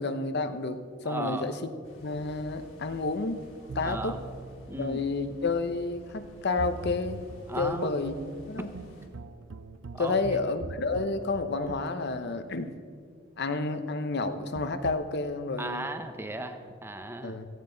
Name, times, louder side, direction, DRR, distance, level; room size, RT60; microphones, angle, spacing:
voice 1, 0.0-1.6 2.0-3.4 3.7-4.2 4.7-7.2 7.6-8.2 8.5-8.7 10.0-12.7 13.4-15.9 17.2-17.5, left 3 dB, 60° left, 9 dB, 0.9 m, -30 dB
voice 2, 1.0-1.5 3.8-4.2 4.7-5.0 7.5-8.0 8.6-8.7 9.9-10.4 15.6-17.4, right 1 dB, 10° right, 8 dB, 0.9 m, -36 dB
sound 1, 1.8-9.1, equal, 90° left, 3.9 m, -52 dB
sound 2, 3.7-13.1 14.5-15.0, right 3 dB, 65° right, 0.5 m, -43 dB
16.5 x 15.5 x 3.9 m, 2.2 s
head